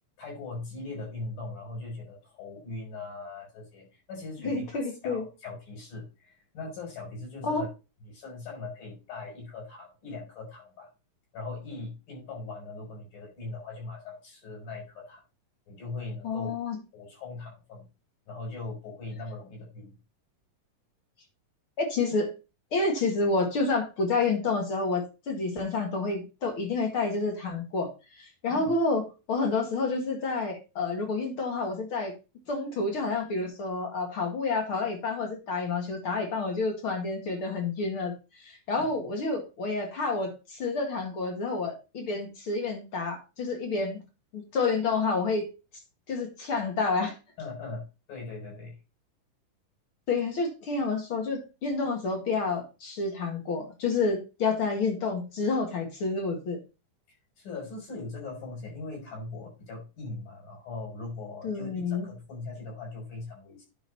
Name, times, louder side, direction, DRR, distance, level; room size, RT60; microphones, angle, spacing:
voice 1, 0.2-4.7 5.0-7.7 8.1-10.9 11.3-15.2 15.7-16.5 16.9-17.9 18.3-20.0 28.5-28.7 38.8-38.9 47.4-48.8 57.1-63.6, left 3 dB, 85° left, -4 dB, 7.4 m, -40 dB
voice 2, 4.4-5.2 7.4-7.6 16.2-16.8 21.8-22.3 22.7-27.9 28.2-29.0 29.3-32.1 32.5-38.1 38.4-44.0 44.3-45.5 46.1-47.2 50.1-56.6 61.4-62.1, left 3 dB, 40° left, 2 dB, 2.6 m, -29 dB
9.9 x 5.8 x 4.1 m, 0.29 s
omnidirectional pair, 4.0 m